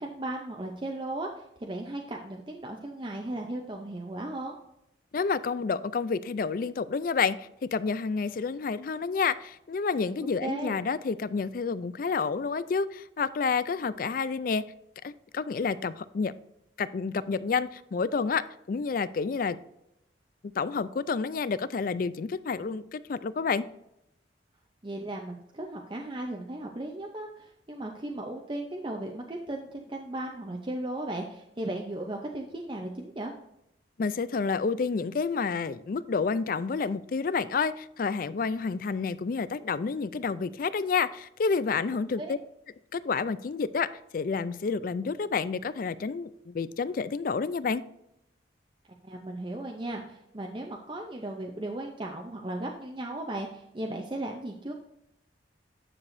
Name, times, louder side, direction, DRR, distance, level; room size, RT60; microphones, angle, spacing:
voice 1, 0.0-4.5 10.4-10.7 24.8-33.3 42.2-42.3 49.0-54.7, right 1 dB, 25° right, 1 dB, 0.6 m, -36 dB
voice 2, 5.1-14.7 15.0-16.3 16.8-19.6 20.6-23.7 34.0-42.4 42.9-47.8, left 5 dB, 50° left, 16 dB, 0.3 m, -29 dB
9.8 x 6.7 x 2.6 m, 0.83 s
head